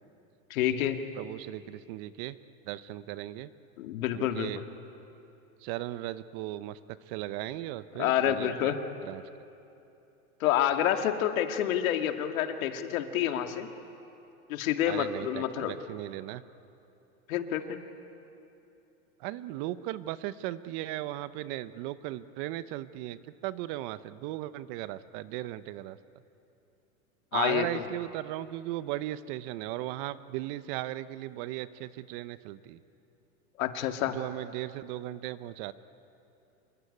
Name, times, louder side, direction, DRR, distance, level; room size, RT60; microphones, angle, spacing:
voice 1, 0.5-1.0 3.8-4.5 8.0-8.8 10.4-13.7 14.5-15.7 17.3-17.6 27.3-27.8 33.6-34.2, left 11 dB, 70° left, 6 dB, 2.2 m, -28 dB
voice 2, 1.2-2.4 2.7-3.5 4.1-4.6 5.6-8.7 9.0-9.2 14.9-16.4 19.2-26.0 27.3-32.8 34.1-35.7, right 15 dB, 40° right, 15 dB, 0.8 m, -37 dB
26.5 x 23.0 x 9.8 m, 2.8 s
supercardioid pair, 140°, 43 cm